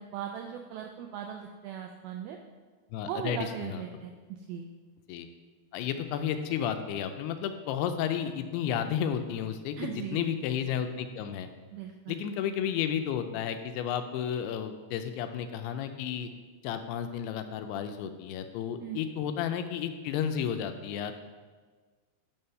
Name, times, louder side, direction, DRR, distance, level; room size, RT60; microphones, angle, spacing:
voice 1, 0.0-2.4 3.1-4.1 4.5-4.7 9.8-10.3 11.7-12.2 18.8-19.0, right 9 dB, 85° right, 3 dB, 2.1 m, -38 dB
voice 2, 2.9-3.8 5.1-5.3 5.7-11.5 12.1-16.3 16.6-21.1, left 8 dB, 80° left, 8 dB, 2.4 m, -32 dB
10.5 x 3.8 x 5.5 m, 1.4 s
omnidirectional pair, 4.9 m